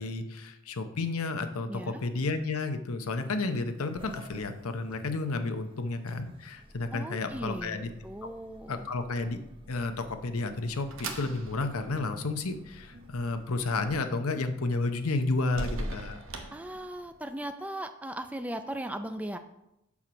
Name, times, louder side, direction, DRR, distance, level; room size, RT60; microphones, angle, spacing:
voice 1, 0.0-7.9 8.7-9.4 9.7-16.2, left 3 dB, 85° left, 8 dB, 0.8 m, -31 dB
voice 2, 1.7-2.0 6.9-7.8 8.0-8.9 16.5-19.4, right 1 dB, 5° right, 8 dB, 0.4 m, -38 dB
sound 1, 3.0-13.9, equal, 25° right, 0.8 m, -53 dB
sound 2, 10.0-17.3, right 2 dB, 65° right, 1.0 m, -42 dB
7.2 x 6.2 x 5.1 m, 0.85 s
head